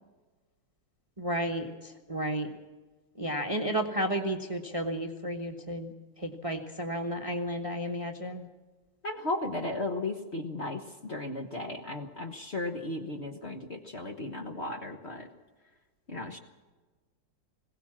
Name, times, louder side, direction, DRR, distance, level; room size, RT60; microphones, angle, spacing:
voice 1, 1.2-2.5 3.2-8.5, right 1 dB, 20° right, 4 dB, 1.1 m, -32 dB
voice 2, 9.0-15.3 16.1-16.4, left 2 dB, 40° left, 4 dB, 1.3 m, -35 dB
21.0 x 17.5 x 7.4 m, 1.3 s
omnidirectional pair, 2.1 m